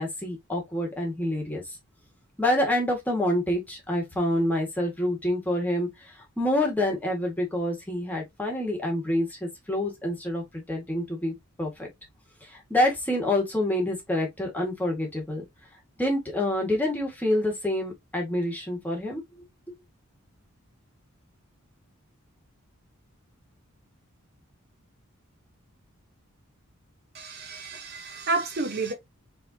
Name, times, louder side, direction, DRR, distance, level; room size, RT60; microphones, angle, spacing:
voice 1, 0.0-1.6 2.4-5.9 6.4-11.9 12.5-15.5 16.0-19.2, left 1 dB, 10° left, 1.6 m, -27 dB
voice 2, 27.1-28.9, right 3 dB, 50° right, 0.9 m, -30 dB
4.4 x 3.5 x 2.7 m
head